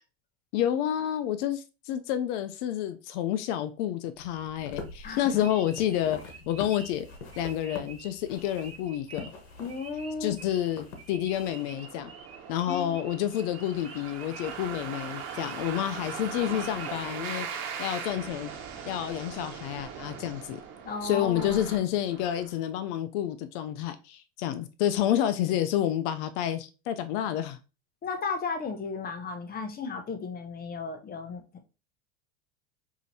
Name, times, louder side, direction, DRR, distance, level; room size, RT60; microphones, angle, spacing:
voice 1, 0.5-6.2 6.5-7.1 7.4-9.3 10.2-12.1 12.5-17.5 17.8-18.5 18.9-20.6 21.0-27.6, left 11 dB, 70° left, 0.5 m, -29 dB
sound 1, 4.2-11.5, left 4 dB, 85° left, 1.1 m, -45 dB
sound 2, 4.7-17.5, right 4 dB, 15° right, 1.0 m, -50 dB
voice 2, 5.0-5.5 9.6-10.3 12.7-13.0 20.8-21.6 28.0-31.7, left 4 dB, 25° left, 0.7 m, -35 dB
sound 3, 11.3-22.5, right 7 dB, 65° right, 1.1 m, -40 dB
4.9 x 2.7 x 2.7 m
supercardioid pair, 110°, 37 cm